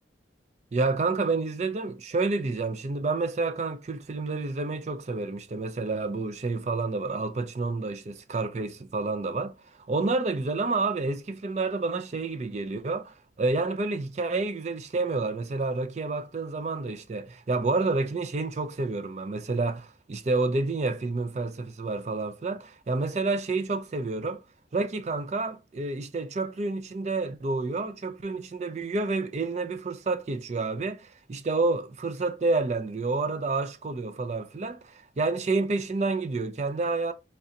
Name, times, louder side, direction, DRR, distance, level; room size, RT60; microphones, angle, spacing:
voice 1, 0.7-9.5 9.9-24.4 24.7-37.1, right 3 dB, 35° right, 0.4 m, -29 dB
3.7 x 3.3 x 2.8 m
head